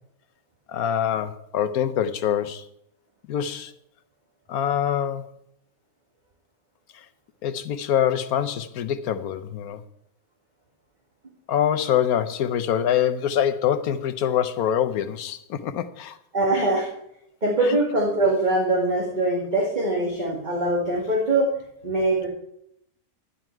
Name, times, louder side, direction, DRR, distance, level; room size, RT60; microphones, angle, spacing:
voice 1, 0.7-2.7 3.3-3.7 4.5-5.3 6.9-7.1 7.4-9.8 11.5-16.2 17.6-17.8, left 9 dB, 90° left, 1.3 m, -25 dB
voice 2, 16.3-16.9 17.4-21.5 21.8-22.3, right 2 dB, 30° right, 2.2 m, -22 dB
12.0 x 9.7 x 4.5 m
omnidirectional pair, 1.5 m